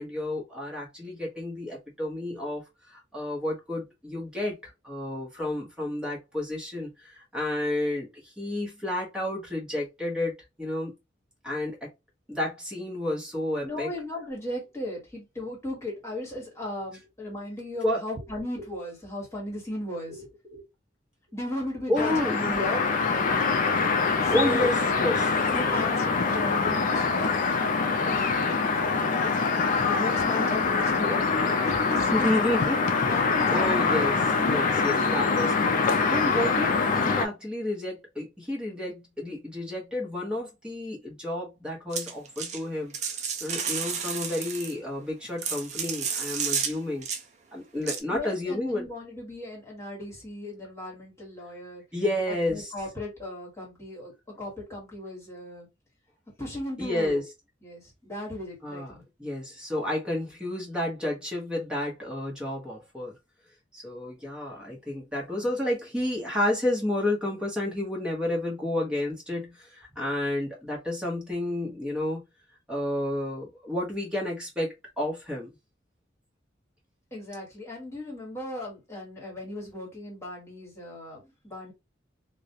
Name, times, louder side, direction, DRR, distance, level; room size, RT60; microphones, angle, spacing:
voice 1, 0.0-2.6 2.9-8.1 8.4-10.9 11.4-11.9 12.3-13.9 17.8-18.0 21.9-22.4 24.3-25.3 32.1-32.8 33.5-35.7 36.0-42.9 43.4-47.1 47.5-48.9 51.9-52.7 56.8-57.2 58.6-58.9 59.2-63.1 63.7-72.2 72.7-75.5, left 1 dB, 5° right, 0.8 m, -30 dB
voice 2, 13.6-20.6 21.3-22.8 24.2-24.7 25.5-29.3 29.7-31.2 31.6-32.5 33.1-33.8 48.1-51.8 52.3-54.1 54.4-55.7 56.4-57.2 57.6-59.0 77.1-81.7, left 1 dB, 15° left, 1.3 m, -36 dB
sound 1, 22.0-37.3, left 4 dB, 45° left, 0.4 m, -24 dB
sound 2, 41.9-42.6 42.9-44.7 45.2-46.7 47.0-47.2 47.9-48.0, right 6 dB, 40° right, 0.4 m, -31 dB
2.4 x 2.1 x 2.6 m
head